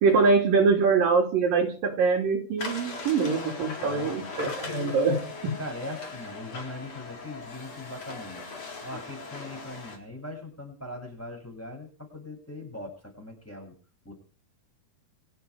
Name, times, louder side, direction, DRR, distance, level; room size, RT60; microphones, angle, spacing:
voice 1, 0.0-5.5, right 4 dB, 60° right, 1 dB, 4.2 m, -24 dB
sound 1, 2.6-10.0, left 3 dB, 40° left, 4.9 m, -39 dB
voice 2, 3.8-5.0 5.6-8.5 8.8-13.7 14.0-14.1, left 1 dB, 5° left, 0 dB, 7.2 m, -40 dB
29.0 x 9.6 x 5.0 m, 0.37 s
omnidirectional pair, 4.7 m